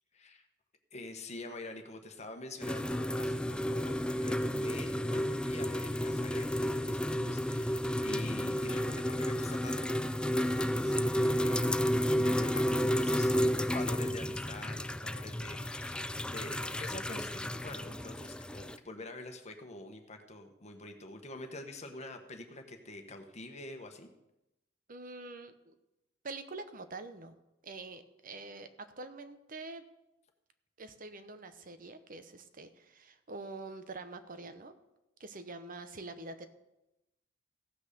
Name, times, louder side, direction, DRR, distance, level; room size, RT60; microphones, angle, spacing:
voice 1, 0.1-0.5 0.9-11.6 12.1-13.3 13.6-24.1, left 2 dB, 35° left, 5 dB, 1.3 m, -46 dB
sound 1, 2.6-18.8, equal, 5° left, 0.3 m, -32 dB
voice 2, 24.9-25.7 26.2-27.3 27.6-29.8 30.8-34.7 35.2-36.5, right 3 dB, 50° right, 10 dB, 0.9 m, -45 dB
15.5 x 6.2 x 6.8 m, 0.91 s
head